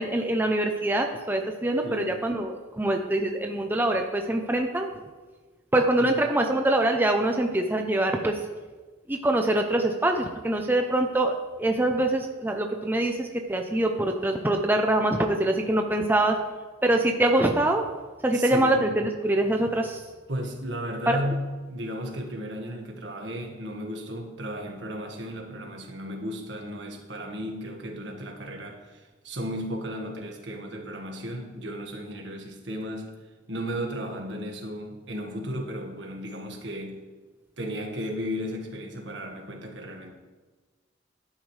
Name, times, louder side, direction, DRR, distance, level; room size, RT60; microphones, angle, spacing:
voice 1, 0.0-4.9 5.7-8.4 9.1-16.4 16.8-17.8 18.2-20.1 21.1-21.2, right 1 dB, 10° right, 3 dB, 0.6 m, -24 dB
voice 2, 1.8-2.2 6.0-6.2 18.3-18.8 20.3-33.1 33.5-37.0 37.6-40.1, equal, 65° right, 1 dB, 1.7 m, -34 dB
11.5 x 10.0 x 3.3 m, 1.3 s
head